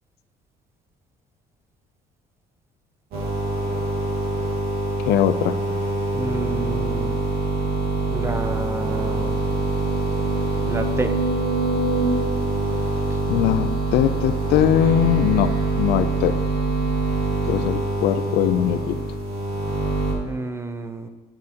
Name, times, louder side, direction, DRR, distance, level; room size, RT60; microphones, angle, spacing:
sound 1, 3.1-20.1, right 2 dB, 65° right, 2.2 m, -24 dB
voice 1, 5.1-5.6 13.3-16.4 17.5-19.0, left 11 dB, 75° left, 12 dB, 0.4 m, -21 dB
voice 2, 6.1-7.1 8.1-9.4 10.7-11.2 13.1-13.2 20.2-21.1, right 3 dB, 15° right, 8 dB, 0.6 m, -29 dB
sound 2, 8.5-8.6 9.0-9.1 9.7-13.9 14.5-14.6, right 1 dB, 45° left, 1.6 m, -29 dB
8.8 x 7.4 x 2.9 m, 1.2 s
cardioid pair, 110°, 17 cm